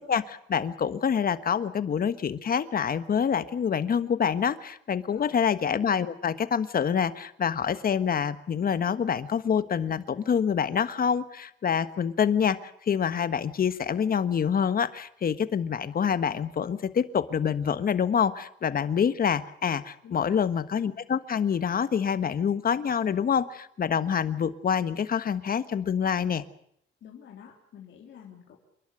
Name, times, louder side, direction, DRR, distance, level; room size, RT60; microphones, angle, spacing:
voice 1, 0.1-12.6 12.9-26.4, left 7 dB, 45° left, 13 dB, 1.4 m, -26 dB
voice 2, 20.0-20.4 27.0-28.6, left 8 dB, 65° left, -1 dB, 3.6 m, -48 dB
28.0 x 11.5 x 10.0 m, 0.70 s
cardioid pair, 90°, 20 cm